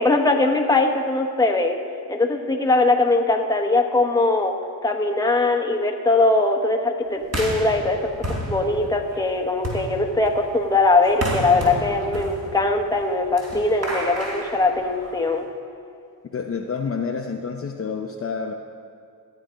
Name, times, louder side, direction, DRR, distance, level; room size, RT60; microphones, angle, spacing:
voice 1, 0.0-1.8 2.1-4.5 4.8-8.0 8.5-15.4, left 2 dB, 10° left, 2 dB, 1.2 m, -21 dB
sound 1, 7.2-15.4, right 1 dB, 40° right, 3.4 m, -32 dB
voice 2, 16.3-18.5, left 5 dB, 35° left, 2 dB, 0.7 m, -28 dB
14.5 x 8.9 x 5.2 m, 2.4 s
cardioid pair, 100°, 39 cm